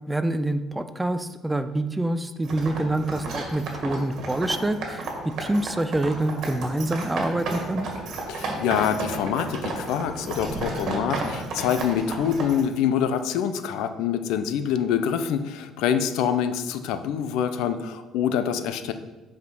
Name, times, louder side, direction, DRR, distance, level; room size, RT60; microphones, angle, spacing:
voice 1, 0.1-7.9, right 1 dB, 10° right, 10 dB, 0.4 m, -26 dB
sound 1, 2.4-12.6, right 2 dB, 50° right, 1.9 m, -33 dB
voice 2, 8.3-18.9, left 8 dB, 85° left, 10 dB, 0.6 m, -25 dB
8.3 x 5.1 x 5.4 m, 1.1 s
cardioid pair, 160°, 0 cm